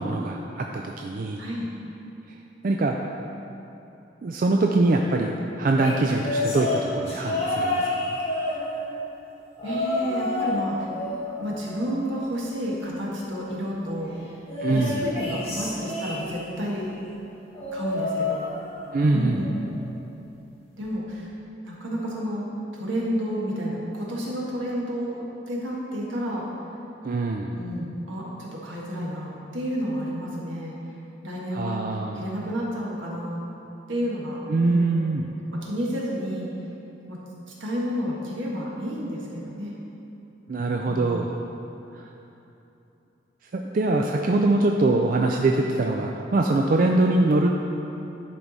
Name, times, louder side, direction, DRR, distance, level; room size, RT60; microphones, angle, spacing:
voice 1, 0.0-1.4 2.3-2.4 2.6-3.0 4.2-8.2 14.6-15.0 18.9-19.4 27.0-27.6 31.5-32.2 34.5-35.3 40.5-41.3 41.9-42.1 43.5-47.5, right 2 dB, 45° right, 1 dB, 0.3 m, -23 dB
voice 2, 1.4-1.7 9.6-10.9 11.4-14.3 14.7-17.0 17.7-18.5 19.1-19.6 20.8-21.3 21.6-22.5 22.7-26.5 27.5-30.7 31.2-31.8 32.1-33.4 33.9-35.1 35.6-36.5 37.1-37.2 37.6-39.7 40.8-41.2, equal, 80° right, -4 dB, 1.6 m, -30 dB
sound 1, 5.7-9.0 9.6-10.6 10.9-12.4 14.5-16.6 17.5-19.0 19.3-19.7 20.8-20.9, left 2 dB, 30° left, 1.6 m, -29 dB
10.5 x 4.7 x 4.0 m, 2.9 s
head